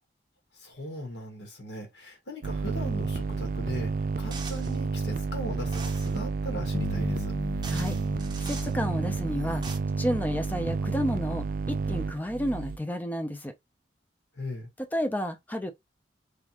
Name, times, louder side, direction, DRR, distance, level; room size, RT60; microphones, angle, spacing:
voice 1, 0.6-3.9 4.2-7.3 14.4-14.7, equal, 75° left, 1.6 m, -39 dB
sound 1, 2.4-12.8, right 4 dB, 50° right, 0.3 m, -30 dB
sound 2, 4.3-4.8 5.7-6.2 7.2-7.3 7.6-8.7 9.4-9.8, right 5 dB, 25° right, 0.7 m, -42 dB
sound 3, 6.7-10.7, left 2 dB, 55° left, 0.8 m, -38 dB
voice 2, 8.4-9.6 10.0-13.5 14.8-15.7, equal, 10° left, 0.5 m, -31 dB
3.5 x 3.5 x 2.9 m
head